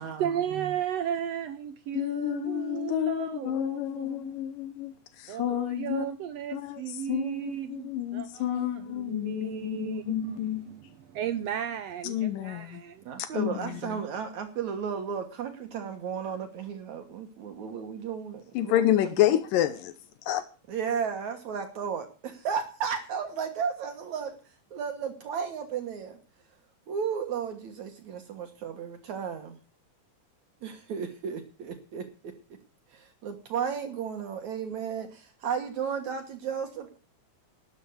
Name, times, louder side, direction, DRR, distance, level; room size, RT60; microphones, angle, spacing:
voice 1, 0.0-4.4 5.3-13.0, right 10 dB, 80° right, 1.4 m, -35 dB
voice 2, 1.9-6.1 6.5-6.8 7.1-10.6 12.0-12.8 13.3-14.0 18.6-19.9 20.3-20.4, left 13 dB, 85° left, 2.5 m, -29 dB
voice 3, 13.0-19.0 19.3-19.4 20.7-24.4 24.7-26.2 26.9-29.6 30.6-32.3 32.9-36.9, right 7 dB, 65° right, 2.6 m, -34 dB
12.5 x 8.3 x 7.9 m
omnidirectional pair, 3.8 m